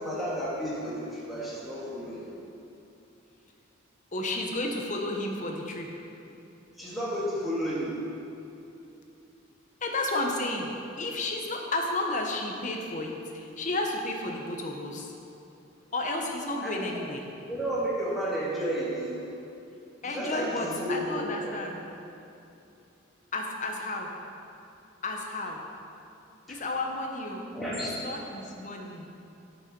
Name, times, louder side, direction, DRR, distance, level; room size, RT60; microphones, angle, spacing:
voice 1, 0.0-2.4 6.8-8.0 16.6-16.9 17.5-19.2 20.0-21.6 26.5-26.6 27.5-28.0, equal, ahead, -8 dB, 1.7 m, -32 dB
voice 2, 4.1-5.9 9.8-15.1 15.9-17.2 20.0-21.8 23.3-24.1 25.0-25.6 26.5-27.5 27.8-29.1, left 2 dB, 35° left, 2 dB, 0.9 m, -32 dB
9.5 x 6.3 x 5.2 m, 2.7 s
head